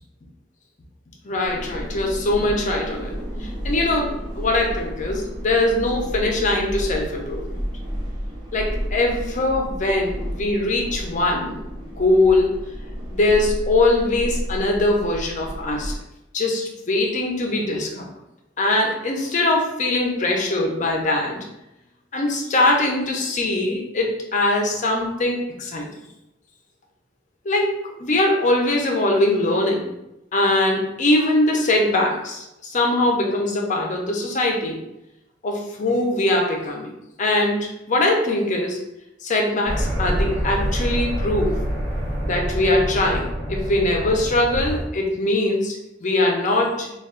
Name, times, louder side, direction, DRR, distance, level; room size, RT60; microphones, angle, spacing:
voice 1, 1.2-7.5 8.5-12.6 13.1-15.9 16.3-18.1 18.6-21.4 22.1-25.9 27.4-29.9 30.3-34.8 35.4-36.9 37.2-38.8 39.2-41.6 42.3-46.9, left 2 dB, 45° left, 1 dB, 0.6 m, -22 dB
sound 1, 1.4-15.9, equal, 25° right, 0.7 m, -31 dB
sound 2, 39.7-44.8, equal, 80° right, 1.0 m, -26 dB
2.3 x 2.3 x 3.6 m, 0.89 s
head